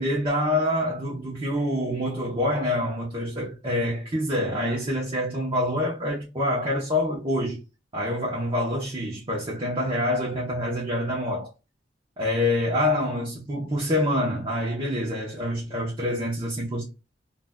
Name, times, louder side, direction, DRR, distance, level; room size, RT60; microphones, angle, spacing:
voice 1, 0.0-7.6 7.9-11.5 12.2-16.8, left 1 dB, 30° right, 0.9 m, -26 dB
3.8 x 2.5 x 2.2 m
head